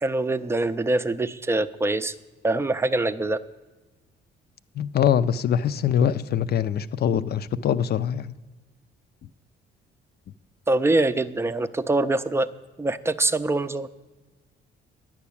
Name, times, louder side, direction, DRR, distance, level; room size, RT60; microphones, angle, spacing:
voice 1, 0.0-2.1 2.4-3.4 10.7-12.5 12.8-13.9, right 2 dB, 15° right, 0.5 m, -24 dB
voice 2, 4.8-8.3, left 9 dB, 55° left, 0.5 m, -23 dB
10.5 x 5.9 x 8.5 m
cardioid pair, 90°, 20 cm